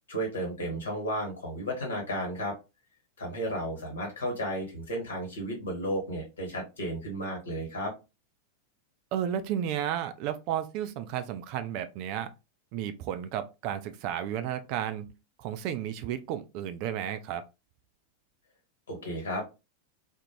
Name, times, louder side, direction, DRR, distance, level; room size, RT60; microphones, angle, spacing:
voice 1, 0.1-2.5 3.2-7.9 18.9-19.4, equal, 65° left, 1.2 m, -33 dB
voice 2, 9.1-12.3 12.7-15.1 15.4-17.4, right 10 dB, 45° right, 0.3 m, -33 dB
2.5 x 2.1 x 2.9 m
figure-of-eight pair, 90°, 0 cm